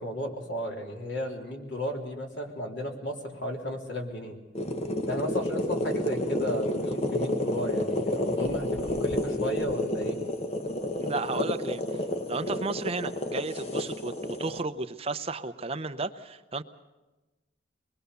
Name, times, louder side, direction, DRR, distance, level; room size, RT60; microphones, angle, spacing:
voice 1, 0.0-4.4 5.1-10.2, equal, 75° left, 1 dB, 3.7 m, -34 dB
sound 1, 4.5-14.6, left 1 dB, 35° left, 1.2 m, -30 dB
voice 2, 11.0-11.8 12.3-16.6, right 3 dB, 30° right, 10 dB, 0.7 m, -33 dB
24.0 x 21.0 x 6.9 m, 1.1 s
head